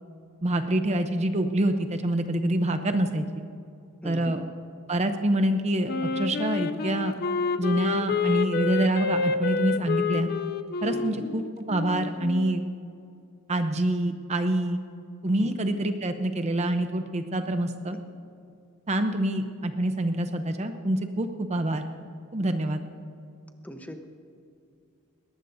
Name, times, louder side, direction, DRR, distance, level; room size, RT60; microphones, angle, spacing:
voice 1, 0.4-3.4 4.0-4.4 4.9-7.2 7.6-10.3 10.8-12.6 13.5-14.8 15.2-18.0 18.9-21.9 22.3-22.8, right 1 dB, 30° right, 7 dB, 0.7 m, -26 dB
voice 2, 4.0-4.3 10.9-11.3 15.4-15.6 23.6-24.0, equal, 5° left, 5 dB, 0.9 m, -40 dB
Wind instrument woodwind instrument, 5.9-12.6, left 5 dB, 45° left, 0.5 m, -29 dB
21.0 x 18.5 x 2.7 m, 2.5 s
head